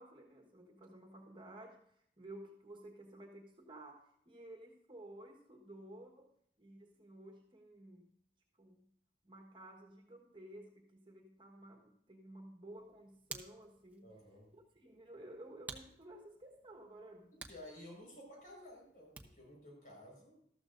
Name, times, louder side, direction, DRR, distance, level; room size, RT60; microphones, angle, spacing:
voice 1, 0.0-6.3 6.6-8.1 8.6-8.8 9.2-14.1 14.5-17.3, right 1 dB, 25° right, 1 dB, 1.3 m, -54 dB
Hands, 12.7-19.6, right 3 dB, 10° right, 0.8 m, -55 dB
voice 2, 14.0-14.5 17.5-20.4, left 1 dB, 50° left, -1 dB, 5.0 m, -54 dB
13.5 x 13.5 x 2.6 m, 0.70 s
head